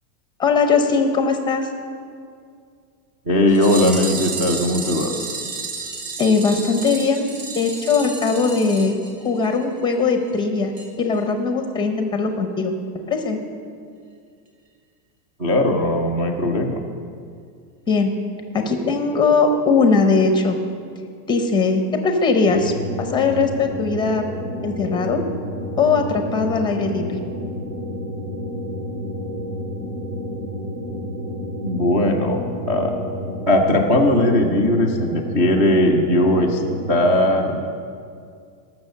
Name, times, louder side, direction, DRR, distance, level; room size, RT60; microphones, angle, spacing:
voice 1, 0.4-1.7 6.2-7.3 7.6-8.9 9.2-12.8 13.1-13.4 17.9-18.1 18.5-20.6 21.3-22.7 23.0-24.2 24.6-25.2 25.8-27.0, left 4 dB, 10° left, 5 dB, 0.7 m, -20 dB
voice 2, 3.3-5.1 15.4-16.8 31.6-32.4 32.7-32.9 33.5-36.6 36.9-37.6, left 1 dB, 15° right, -1 dB, 0.3 m, -18 dB
sound 1, 3.5-9.6 9.9-10.0 10.3-10.4 10.8-10.9 11.2-11.3, right 4 dB, 45° right, 1.9 m, -31 dB
sound 2, 22.4-37.2, left 1 dB, 70° right, 3.3 m, -30 dB
19.0 x 6.8 x 6.5 m, 2.3 s
supercardioid pair, 170°, 49 cm